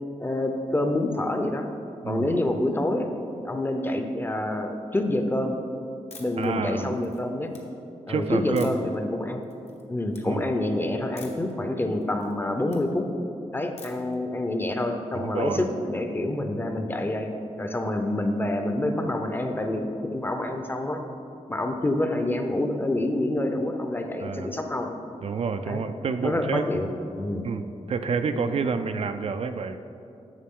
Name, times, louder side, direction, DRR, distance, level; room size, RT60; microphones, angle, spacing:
voice 1, 0.2-1.6 2.1-5.5 6.2-7.5 8.1-9.4 9.9-13.0 13.5-17.3 17.6-21.0 21.5-24.9 25.7-25.9 26.2-27.4 28.3-28.6, left 1 dB, 15° left, 5 dB, 0.6 m, -27 dB
sound 1, 6.1-6.5 6.9-7.6 8.6-9.0 9.4-9.8 10.1-10.2 11.2-11.5 11.9-12.8 13.8-14.2, left 4 dB, 60° left, 1.1 m, -47 dB
voice 2, 6.4-6.9 8.1-8.7 10.2-10.5 15.1-15.7 24.2-24.5 25.2-26.6 27.4-27.6 27.9-29.8, right 5 dB, 55° right, 9 dB, 0.4 m, -28 dB
11.0 x 6.8 x 3.7 m, 2.7 s
wide cardioid pair, 145°, 13 cm